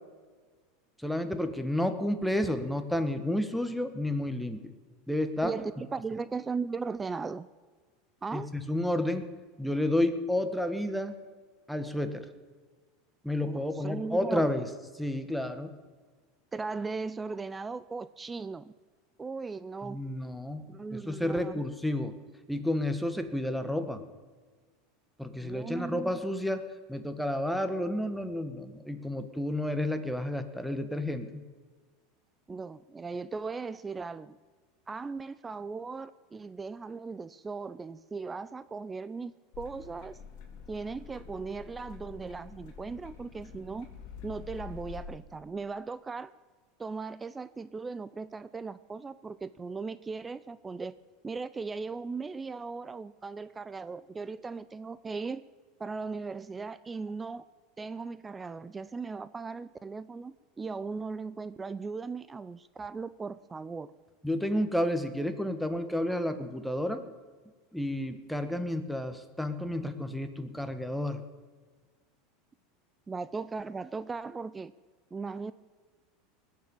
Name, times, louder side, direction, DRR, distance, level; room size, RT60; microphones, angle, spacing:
voice 1, 1.0-4.6 5.1-5.6 8.3-9.2 9.6-11.1 11.7-12.2 13.2-14.6 14.9-15.7 19.8-22.1 22.5-24.0 25.2-31.4 64.2-67.0 67.7-71.2, left 1 dB, ahead, 8 dB, 1.5 m, -31 dB
voice 2, 5.4-7.5 8.2-8.5 13.4-14.5 16.5-18.7 19.2-20.0 20.7-21.6 25.3-26.2 32.5-34.4 34.9-40.2 40.7-43.9 44.2-46.3 46.8-51.0 51.2-55.4 55.8-57.5 57.8-63.9 73.1-74.7 75.1-75.5, right 4 dB, 20° right, 16 dB, 0.5 m, -38 dB
sound 1, 39.5-45.0, left 8 dB, 55° left, 3.0 m, -47 dB
19.5 x 7.5 x 8.4 m, 1.5 s
supercardioid pair, 105°, 0 cm